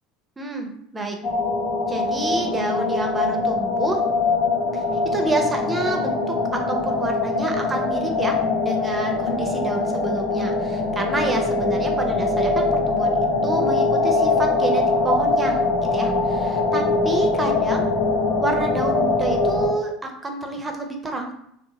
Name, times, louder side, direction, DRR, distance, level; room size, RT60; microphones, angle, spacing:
voice 1, 0.4-1.2 1.9-4.0 4.7-4.8 5.1-15.6 15.9-17.9 18.4-21.3, right 2 dB, 20° right, 3 dB, 0.6 m, -28 dB
sound 1, 1.2-19.7, left 3 dB, 65° left, 0.6 m, -22 dB
2.8 x 2.1 x 2.7 m, 0.73 s
hypercardioid pair, 80°, 0 cm